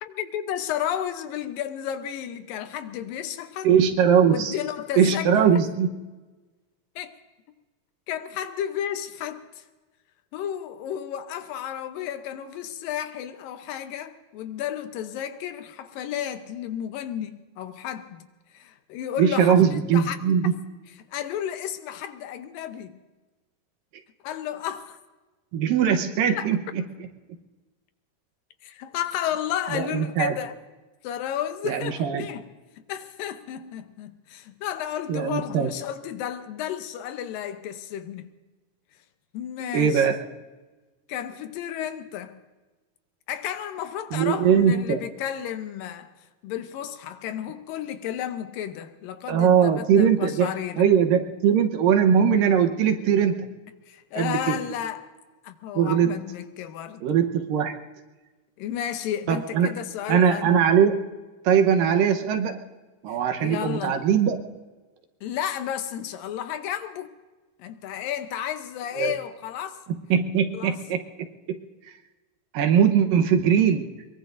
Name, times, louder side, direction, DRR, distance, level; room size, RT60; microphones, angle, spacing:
voice 1, 0.0-3.7 4.3-5.6 7.0-7.2 8.1-9.6 10.3-18.3 18.5-20.2 20.4-20.6 21.1-23.0 24.2-25.0 26.4-26.5 28.6-30.6 31.0-32.5 32.9-38.3 39.3-40.2 41.1-42.4 43.3-46.1 46.4-50.9 53.9-55.0 55.4-57.0 58.6-60.7 63.1-64.0 65.2-67.1 67.6-69.8 70.5-70.8 72.7-72.9, left 10 dB, 80° left, 2.5 m, -32 dB
voice 2, 3.6-4.5 5.0-5.9 19.2-20.6 25.5-26.8 29.7-30.3 31.6-32.3 35.1-35.7 39.7-40.1 44.1-45.0 49.3-50.5 50.8-53.5 54.2-54.6 55.8-56.1 57.0-57.7 59.3-59.7 60.1-60.9 61.5-62.6 63.0-64.4 69.0-69.1 70.1-71.0 71.5-71.6 72.5-73.8, right 8 dB, 75° right, 2.7 m, -20 dB
22.5 x 22.5 x 2.6 m
omnidirectional pair, 4.1 m